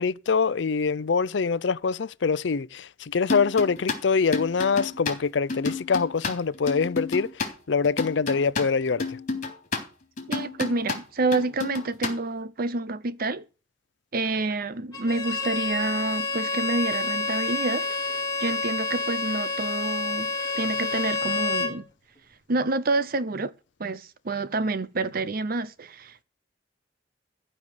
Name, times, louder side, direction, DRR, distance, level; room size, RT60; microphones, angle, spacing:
voice 1, 0.0-7.3 7.7-9.2, left 5 dB, 75° left, 0.5 m, -24 dB
sound 1, 3.3-7.5 7.8-9.8 10.2-11.0 11.3-12.1, left 3 dB, 45° left, 3.6 m, -31 dB
voice 2, 10.3-13.4 14.1-17.9 18.4-20.3 20.6-21.9 22.5-23.5 23.8-26.2, right 3 dB, 55° right, 0.8 m, -28 dB
Bowed string instrument, 14.9-21.8, left 3 dB, 20° left, 3.8 m, -28 dB
15.0 x 5.5 x 9.3 m
head